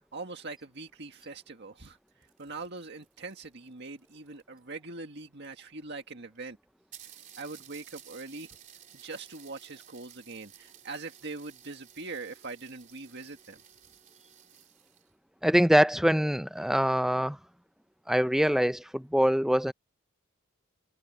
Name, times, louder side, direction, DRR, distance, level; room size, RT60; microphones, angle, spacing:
voice 1, 0.1-6.6 7.4-8.5 8.9-13.6, right 3 dB, 55° right, 1.8 m, -42 dB
sound 1, 2.1-4.7 5.6-5.7 5.9-6.0 6.3-6.4 6.9-15.1, right 9 dB, 35° right, 3.7 m, -54 dB
voice 2, 15.4-17.4 18.1-19.7, equal, ahead, 0.5 m, -24 dB
head